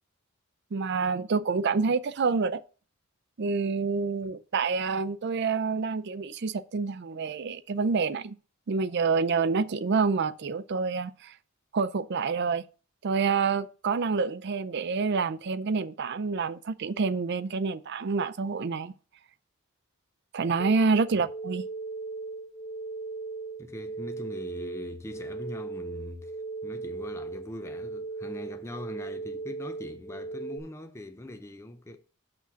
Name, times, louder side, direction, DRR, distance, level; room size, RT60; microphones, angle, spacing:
voice 1, 0.7-2.6 3.4-8.3 8.7-11.3 11.7-12.6 13.0-18.9 20.3-21.6, right 4 dB, 50° right, 0.4 m, -27 dB
sound 1, 20.6-30.6, right 3 dB, 50° left, 1.1 m, -38 dB
voice 2, 23.6-26.4 26.6-32.0, left 1 dB, 15° left, 0.5 m, -42 dB
6.2 x 5.9 x 5.7 m
head